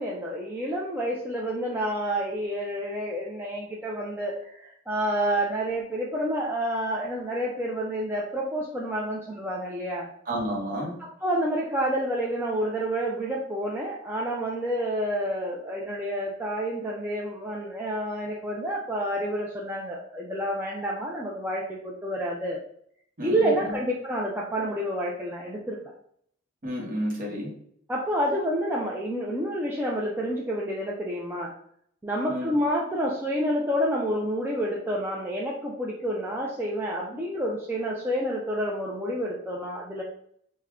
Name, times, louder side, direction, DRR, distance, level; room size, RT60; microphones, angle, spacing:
voice 1, 0.0-10.1 11.0-22.6 23.2-25.8 27.9-31.5 32.0-40.0, equal, 10° right, -3 dB, 0.4 m, -29 dB
voice 2, 10.3-10.9 23.2-23.5 26.6-27.5 32.3-32.5, equal, 45° right, -2 dB, 0.8 m, -31 dB
3.4 x 2.1 x 3.5 m, 0.67 s
head